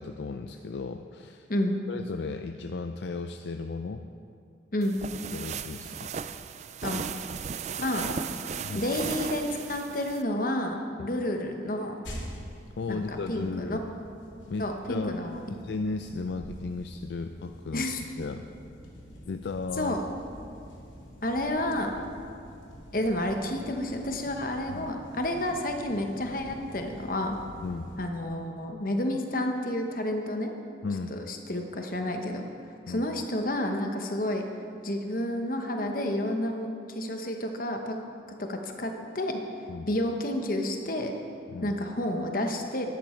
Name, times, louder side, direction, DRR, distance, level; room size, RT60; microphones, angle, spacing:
voice 1, 0.0-1.5 1.9-4.0 5.3-6.1 8.6-8.8 11.0-11.1 12.8-13.8 14.5-15.2 15.5-17.9 18.2-18.5 19.3-20.0 24.7-24.9 27.6-27.9 30.8-31.2 32.9-33.1 39.7-39.9 41.5-41.7, left 4 dB, 65° left, 6 dB, 0.4 m, -35 dB
sound 1, 4.8-10.2, right 6 dB, 35° right, 0.3 m, -36 dB
voice 2, 8.7-12.0 12.9-13.8 14.6-15.4 17.7-18.0 19.8-20.0 21.2-21.9 22.9-27.4 28.0-30.5 31.1-32.4 32.9-34.4 34.8-38.0 38.4-39.4 39.9-41.1 41.6-42.9, left 1 dB, 50° left, 4 dB, 1.0 m, -30 dB
sound 2, 12.0-28.0, equal, 90° left, 2.7 m, -46 dB
12.0 x 10.5 x 4.5 m, 2.4 s
head